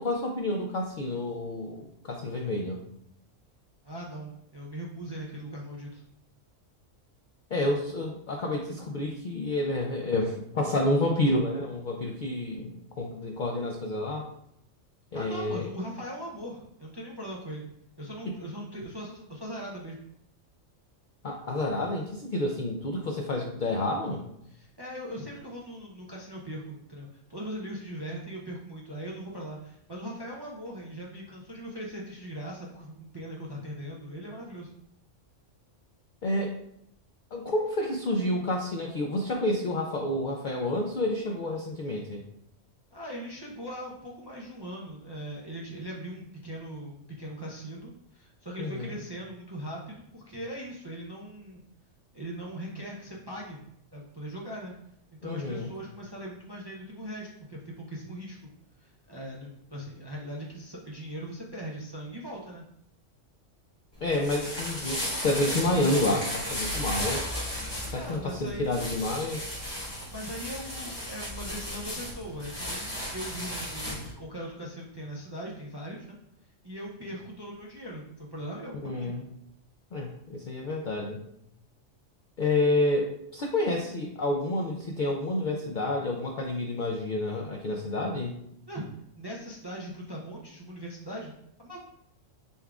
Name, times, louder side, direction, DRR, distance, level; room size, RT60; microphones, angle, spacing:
voice 1, 0.0-2.8 7.5-14.3 15.1-15.7 21.2-24.3 36.2-36.6 37.3-42.2 48.6-49.0 55.2-55.7 64.0-67.3 67.9-69.6 78.8-79.2 79.9-81.2 82.4-88.4, left 1 dB, 65° left, 1 dB, 0.5 m, -29 dB
voice 2, 3.8-6.0 15.1-17.6 18.0-20.0 24.4-34.7 42.9-51.6 52.1-53.6 53.9-54.7 55.1-58.4 58.8-62.6 67.9-68.9 70.1-76.2 76.4-79.1 88.7-88.9 89.2-91.3 91.6-91.8, equal, 35° right, -4 dB, 0.4 m, -40 dB
sound 1, 63.9-74.1, left 1 dB, 20° left, 1.4 m, -35 dB
5.3 x 3.5 x 2.3 m, 0.75 s
omnidirectional pair, 1.3 m